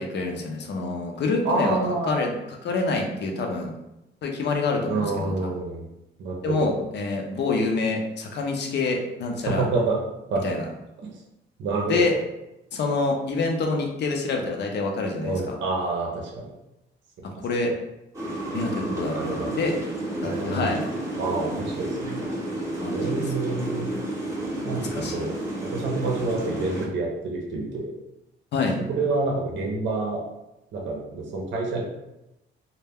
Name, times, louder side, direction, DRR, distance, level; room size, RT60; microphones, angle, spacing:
voice 1, 0.0-1.8 2.0-2.3 2.6-3.7 4.2-5.3 6.4-9.7 10.4-10.6 11.9-12.1 12.7-15.6 17.2-17.7 18.5-19.7 20.2-20.8 22.8-23.3 24.9-25.3 28.5-28.8, left 3 dB, 60° left, 2 dB, 0.6 m, -26 dB
voice 2, 1.4-2.1 4.9-5.8 6.2-6.7 9.4-10.0 10.3-10.4 11.0-11.1 11.6-12.2 15.2-16.5 19.0-19.6 20.2-20.7 21.1-22.3 22.9-23.9 24.6-25.3 25.6-27.9 28.9-30.2 30.7-31.8, right 3 dB, 65° right, -1 dB, 0.6 m, -27 dB
sound 1, 18.1-26.9, right 1 dB, 15° right, 0.8 m, -31 dB
2.2 x 2.1 x 3.4 m, 0.91 s
cardioid pair, 90°, 20 cm